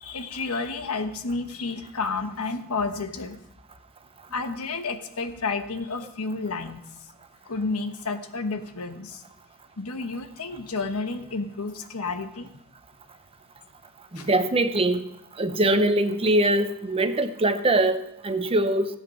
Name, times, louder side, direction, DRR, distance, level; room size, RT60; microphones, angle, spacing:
voice 1, 0.0-3.4 4.3-6.8 7.5-9.2 9.8-12.5 14.1-14.3, left 4 dB, 80° left, 8 dB, 1.2 m, -31 dB
voice 2, 14.1-15.0 15.4-18.9, right 1 dB, 25° right, 9 dB, 0.8 m, -22 dB
16.0 x 8.1 x 5.7 m, 0.79 s
head